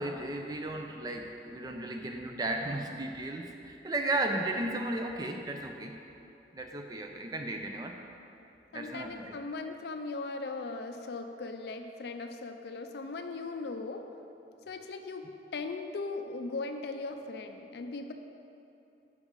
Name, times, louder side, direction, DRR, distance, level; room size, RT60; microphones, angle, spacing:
voice 1, 0.0-5.9 6.5-8.0 8.7-9.4, right 2 dB, 20° right, 3 dB, 0.4 m, -35 dB
voice 2, 8.7-14.1 14.7-18.1, left 3 dB, 65° left, 6 dB, 0.4 m, -38 dB
6.0 x 4.0 x 6.1 m, 2.8 s
head